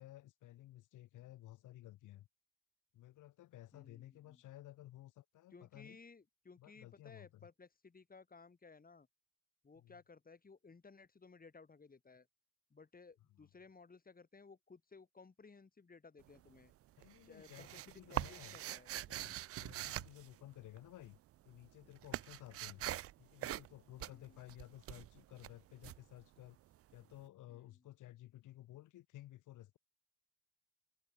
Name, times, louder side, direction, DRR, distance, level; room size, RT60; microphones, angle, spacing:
voice 1, 0.0-2.3 2.9-6.0 6.6-7.5 9.8-10.0 13.3-13.5 17.0-18.6 19.1-21.2 21.4-22.9 23.2-26.6 26.9-29.8, left 15 dB, 85° left, 6.0 m, -55 dB
voice 2, 3.7-4.4 5.5-9.1 9.6-12.3 12.7-16.7 17.2-18.9 24.0-24.6 27.5-27.8, left 4 dB, 30° left, 4.9 m, -59 dB
sound 1, 16.2-16.7 17.0-21.1 21.3-26.9, right 14 dB, 50° right, 0.4 m, -44 dB
cardioid pair, 90°, 30 cm